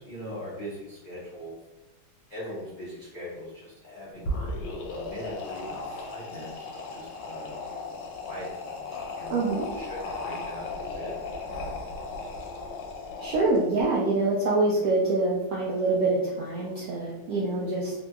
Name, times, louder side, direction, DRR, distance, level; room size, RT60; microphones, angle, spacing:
voice 1, 0.0-1.5 2.3-7.6 8.1-8.8 9.2-11.1, equal, 90° left, -8 dB, 0.4 m, -41 dB
sound 1, 4.1-13.8, left 2 dB, 75° left, 1.2 m, -36 dB
voice 2, 9.3-9.7 13.2-17.9, right 2 dB, 80° right, -4 dB, 0.8 m, -25 dB
3.2 x 2.8 x 2.2 m, 1.0 s
omnidirectional pair, 2.1 m